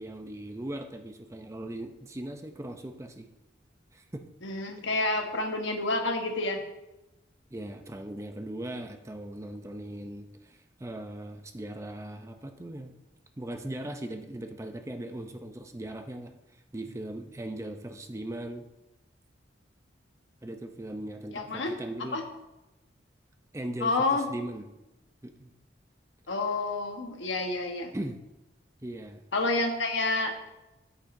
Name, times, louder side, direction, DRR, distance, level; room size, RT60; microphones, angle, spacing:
voice 1, 0.0-3.3 3.9-4.2 7.5-13.0 13.4-16.4 16.7-18.6 20.4-22.2 23.5-24.6 25.2-25.5 27.9-28.2 28.8-29.2, right 1 dB, 15° right, 6 dB, 0.5 m, -39 dB
voice 2, 4.4-6.6 21.3-21.7 22.1-22.2 23.8-24.3 26.3-27.9 29.3-30.3, left 2 dB, 75° left, 4 dB, 1.2 m, -29 dB
10.5 x 8.4 x 2.6 m, 0.96 s
head